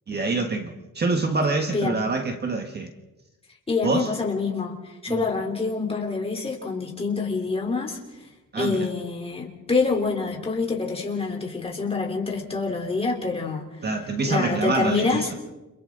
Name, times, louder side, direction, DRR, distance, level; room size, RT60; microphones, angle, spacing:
voice 1, 0.1-2.9 3.8-4.1 5.1-5.2 8.5-8.9 13.8-15.3, right 3 dB, 30° right, 5 dB, 1.4 m, -26 dB
voice 2, 1.7-2.0 3.7-8.0 8.5-13.7 14.3-15.3, left 4 dB, 20° left, 0 dB, 3.5 m, -26 dB
30.0 x 27.0 x 3.8 m, 1.1 s
wide cardioid pair, 175°, 33 cm